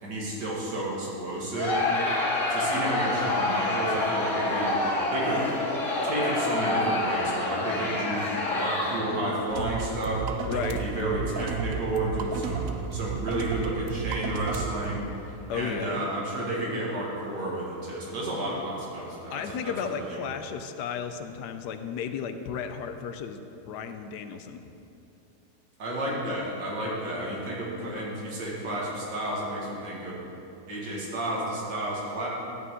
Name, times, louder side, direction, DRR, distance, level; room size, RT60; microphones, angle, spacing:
voice 1, 0.0-1.9 2.5-4.8 5.1-5.4 6.0-10.2 10.5-12.6 12.9-15.1 15.5-20.2 25.8-30.2 30.7-32.3, right 1 dB, 85° right, -4 dB, 2.4 m, -31 dB
Crowd, 1.5-9.3, left 2 dB, 45° left, 2.7 m, -27 dB
sound 1, 9.5-15.0, right 6 dB, 65° right, 0.9 m, -32 dB
voice 2, 10.5-10.8 15.5-16.0 19.3-23.4 23.7-24.6, left 7 dB, 85° left, 8 dB, 1.2 m, -34 dB
12.5 x 8.3 x 3.7 m, 2.8 s
omnidirectional pair, 1.8 m